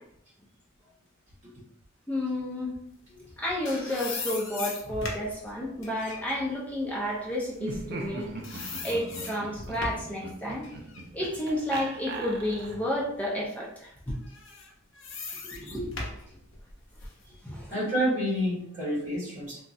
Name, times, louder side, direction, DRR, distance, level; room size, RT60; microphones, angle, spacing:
voice 1, 2.1-2.7 3.4-8.3 8.8-10.7 11.1-14.2 15.4-15.9 17.4-17.7, left 1 dB, 5° left, -5 dB, 0.6 m, -31 dB
sound 1, 3.2-8.1 8.4-10.2 10.6-12.6 13.1-13.2 14.2-17.2, left 3 dB, 65° left, 0.6 m, -39 dB
Laughter, 7.5-13.0, right 3 dB, 50° right, 0.4 m, -40 dB
voice 2, 17.7-19.6, equal, 35° right, -7 dB, 1.5 m, -28 dB
2.9 x 2.4 x 2.6 m, 0.70 s
head